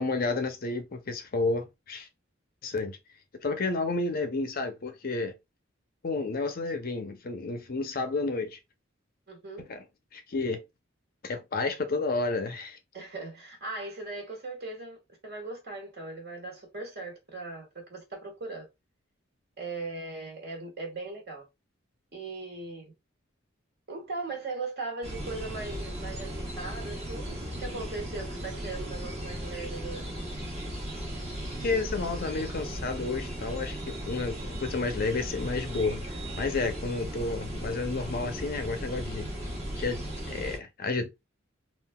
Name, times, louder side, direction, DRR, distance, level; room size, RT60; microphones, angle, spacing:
voice 1, 0.0-2.1 2.6-3.0 3.4-5.3 6.0-8.6 9.7-9.8 10.1-10.6 11.2-12.8 31.6-36.0 36.4-39.3 39.8-41.1, left 3 dB, 50° left, 0.5 m, -31 dB
voice 2, 9.3-9.7 12.9-18.7 19.6-21.4 22.1-22.9 23.9-30.1 32.3-32.7, right 3 dB, 55° right, 1.4 m, -39 dB
sound 1, 25.0-40.6, equal, 35° right, 1.1 m, -36 dB
3.7 x 2.4 x 2.2 m
head